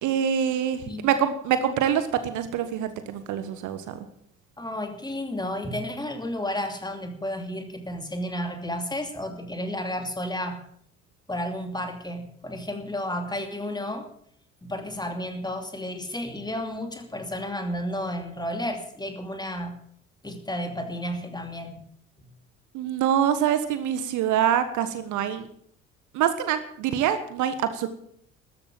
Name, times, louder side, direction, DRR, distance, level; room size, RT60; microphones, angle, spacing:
voice 1, 0.0-4.1 22.7-25.5 26.1-27.9, right 9 dB, 50° right, 11 dB, 1.4 m, -25 dB
voice 2, 4.6-10.6 11.3-14.1 14.6-19.7 20.2-21.8, left 1 dB, 10° left, 6 dB, 2.7 m, -32 dB
13.5 x 12.0 x 7.7 m, 0.67 s
figure-of-eight pair, 55°, 39 cm